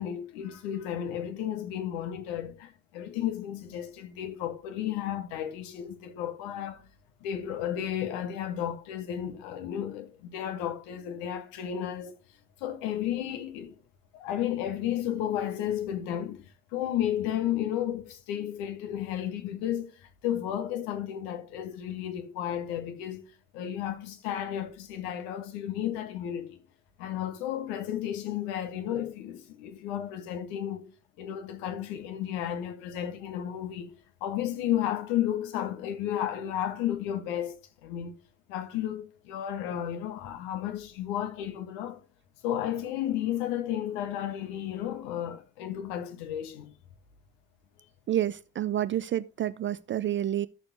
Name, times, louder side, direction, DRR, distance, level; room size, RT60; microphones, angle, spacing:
voice 1, 0.0-6.9 7.2-12.1 12.6-13.7 14.1-23.2 23.5-26.6 27.0-30.9 31.2-33.9 34.2-37.6 37.8-38.1 38.5-42.0 42.4-46.7, left 11 dB, 65° left, 1.4 m, -33 dB
voice 2, 48.1-50.5, right 11 dB, 30° right, 0.4 m, -29 dB
13.0 x 6.8 x 2.9 m
figure-of-eight pair, 45°, 43 cm